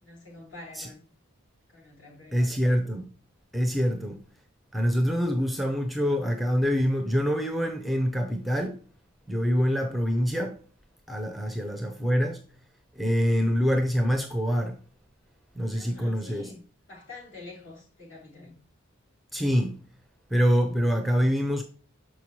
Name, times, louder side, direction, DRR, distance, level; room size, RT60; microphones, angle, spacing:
voice 1, 0.0-1.1 1.7-2.6 11.5-11.8 15.7-16.6 16.9-18.6, left 2 dB, 60° left, 3.5 m, -47 dB
voice 2, 2.3-3.0 3.5-4.2 4.7-8.8 9.3-10.6 11.1-12.4 13.0-14.8 15.6-16.5 19.3-19.7 20.3-21.6, equal, ahead, 0.5 m, -25 dB
6.6 x 5.5 x 3.1 m
head